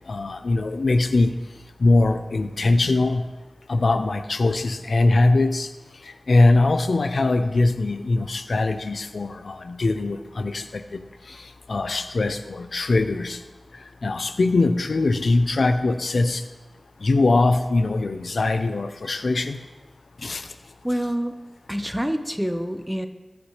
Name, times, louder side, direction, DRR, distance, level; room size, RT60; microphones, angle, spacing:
voice 1, 0.1-1.3 1.8-3.3 3.7-5.7 6.3-11.0 11.3-11.4 11.7-13.4 14.0-16.4 17.0-19.6 20.2-20.5, left 2 dB, 80° left, 9 dB, 0.7 m, -21 dB
voice 2, 20.8-21.4 21.7-23.1, equal, 5° right, 7 dB, 1.1 m, -26 dB
20.5 x 8.4 x 3.3 m, 1.2 s
wide cardioid pair, 50°, 0 cm